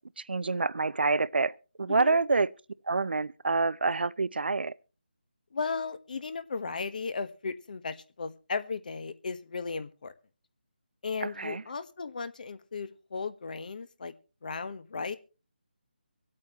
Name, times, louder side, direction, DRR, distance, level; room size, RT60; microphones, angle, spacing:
voice 1, 0.2-2.5 2.9-4.7 11.2-11.6, right 3 dB, 70° right, 0.7 m, -27 dB
voice 2, 5.5-10.1 11.0-14.1 14.4-15.2, left 4 dB, 50° left, 1.4 m, -36 dB
25.0 x 8.5 x 3.1 m
figure-of-eight pair, 160°, 6 cm